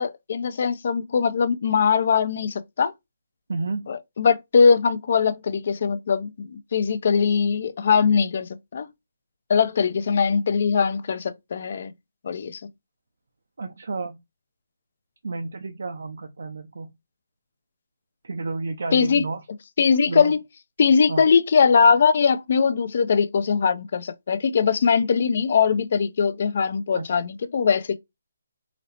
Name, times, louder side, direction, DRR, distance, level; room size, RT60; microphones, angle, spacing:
voice 1, 0.0-2.9 3.9-8.9 9.5-11.9 12.2-12.6 18.9-19.2 19.8-20.4 20.8-28.0, left 6 dB, 50° left, 0.4 m, -21 dB
voice 2, 3.5-3.8 13.6-14.2 15.2-16.9 18.2-19.4 20.1-20.3 21.1-21.3 26.9-27.2, right 3 dB, 75° right, 0.5 m, -31 dB
3.9 x 2.0 x 2.8 m
hypercardioid pair, 165°, 0 cm